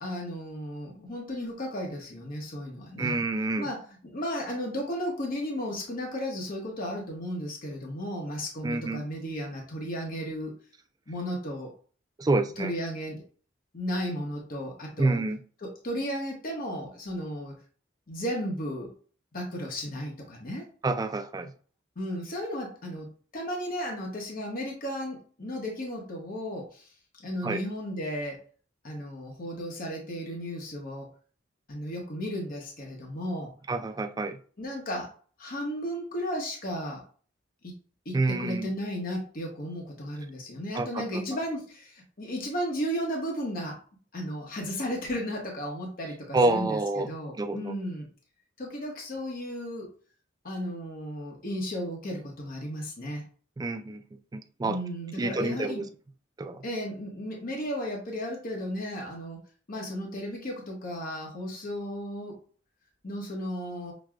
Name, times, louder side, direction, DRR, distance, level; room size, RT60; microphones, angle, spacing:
voice 1, 0.0-3.2 3.6-10.5 11.1-11.7 12.6-13.2 13.7-15.2 15.6-17.6 18.1-18.9 19.3-20.6 22.0-26.9 27.2-28.4 28.8-31.1 31.7-33.5 34.6-35.1 35.4-37.0 37.6-37.7 38.0-43.8 44.1-48.1 48.6-49.9 50.4-53.2 54.6-55.8 56.6-59.4 59.7-62.4 63.0-63.9, equal, 50° left, 0 dB, 0.9 m, -34 dB
voice 2, 3.0-3.7 8.6-9.0 12.2-12.7 15.0-15.4 20.8-21.5 27.4-27.6 33.7-34.4 38.1-38.7 40.7-41.2 46.3-47.1 47.4-47.7 53.6-54.0 54.3-54.8 55.2-55.9 56.4-56.6, right 2 dB, 20° right, 8 dB, 0.3 m, -28 dB
6.0 x 2.2 x 2.4 m, 0.42 s
head